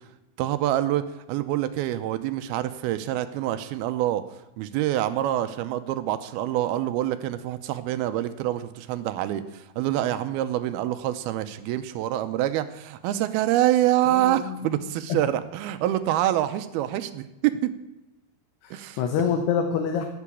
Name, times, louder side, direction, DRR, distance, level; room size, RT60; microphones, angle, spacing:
voice 1, 0.4-1.0 1.3-4.2 4.6-17.7 18.7-19.0, right 13 dB, 80° right, 11 dB, 2.6 m, -26 dB
voice 2, 14.1-14.8 15.1-15.2 18.6-20.0, left 7 dB, 85° left, 4 dB, 3.2 m, -27 dB
16.5 x 6.9 x 8.6 m, 0.96 s
omnidirectional pair, 4.6 m